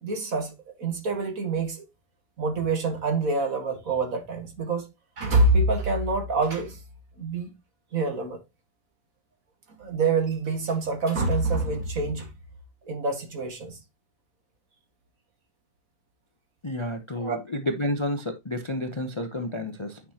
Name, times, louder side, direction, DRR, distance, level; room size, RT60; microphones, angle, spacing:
voice 1, 0.0-1.8 2.4-4.9 5.2-6.8 7.2-7.5 7.9-8.4 9.8-12.3 12.9-13.8 17.2-17.4, right 3 dB, 55° right, 2.1 m, -26 dB
voice 2, 16.6-20.0, left 1 dB, 25° left, 0.6 m, -30 dB
9.5 x 5.8 x 2.8 m
omnidirectional pair, 1.7 m